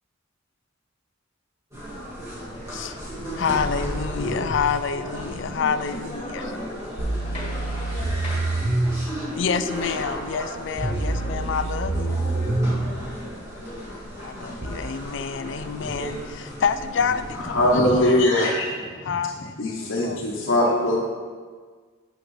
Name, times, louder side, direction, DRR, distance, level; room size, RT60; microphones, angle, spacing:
sound 1, 1.7-18.1, equal, 15° right, 1.8 m, -35 dB
voice 1, 2.6-3.0 3.3-6.4 9.3-12.2 14.2-18.2 19.0-20.4, left 6 dB, 65° left, 11 dB, 0.4 m, -28 dB
voice 2, 5.4-8.5 9.1-9.4 11.2-11.6 12.0-14.7, left 1 dB, 25° left, -5 dB, 1.7 m, -39 dB
sound 2, 7.0-8.9 10.8-12.8 14.6-14.7, right 2 dB, 45° right, 0.8 m, -26 dB
voice 3, 17.5-19.0 19.6-21.0, left 1 dB, 80° left, -4 dB, 1.0 m, -21 dB
8.5 x 6.5 x 3.1 m, 1.6 s
head